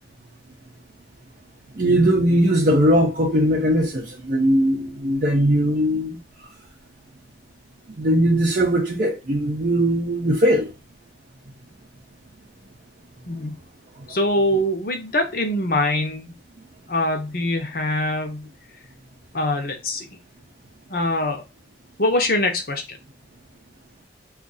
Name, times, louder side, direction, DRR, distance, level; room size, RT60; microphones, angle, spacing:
voice 1, 1.8-6.2 8.0-10.7, equal, 45° right, 0.6 m, -19 dB
voice 2, 14.1-16.3 16.9-18.5 19.3-20.1 20.9-21.4 22.0-23.0, left 1 dB, 50° left, 0.8 m, -23 dB
2.6 x 2.4 x 3.9 m
head